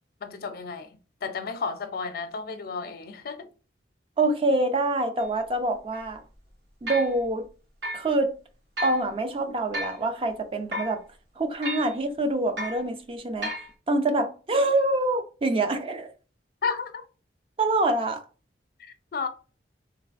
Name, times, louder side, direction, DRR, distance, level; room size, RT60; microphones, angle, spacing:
voice 1, 0.2-0.9 1.2-3.5 16.6-17.1 19.1-19.3, left 5 dB, 55° left, 0.4 m, -32 dB
voice 2, 4.2-6.2 6.8-7.5 7.9-8.4 8.8-11.0 11.4-13.5 13.9-16.1 17.6-18.2, right 2 dB, 30° right, 0.4 m, -25 dB
sound 1, 5.2-5.3 5.9-6.0 6.9-7.1 7.8-8.1 8.8-9.0 9.7-10.0 10.7-11.0 11.6-12.0 12.6-12.8 13.4-13.7, equal, 70° right, 1.1 m, -33 dB
3.2 x 3.1 x 2.4 m
head